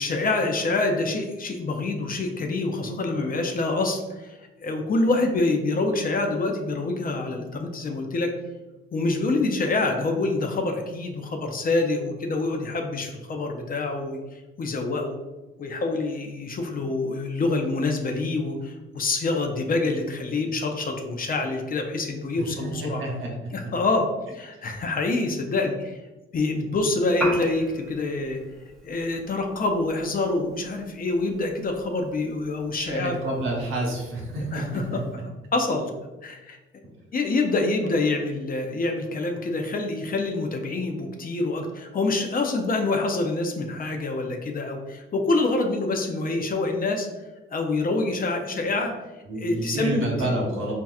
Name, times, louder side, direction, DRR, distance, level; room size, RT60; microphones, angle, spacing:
voice 1, 0.0-8.3 8.9-15.2 15.6-23.0 23.5-26.0 26.3-28.4 28.8-33.2 34.5-34.8 35.5-35.9 36.2-36.6 37.1-47.1 47.5-48.9 49.4-50.3, left 2 dB, 45° left, 3 dB, 0.5 m, -26 dB
voice 2, 22.4-23.3 23.6-23.7 32.8-35.2 49.3-50.7, right 1 dB, 75° right, -2 dB, 1.0 m, -29 dB
Piano, 27.1-35.2, right 1 dB, ahead, 0.7 m, -39 dB
4.1 x 2.3 x 2.3 m, 1.1 s
cardioid pair, 80°, 21 cm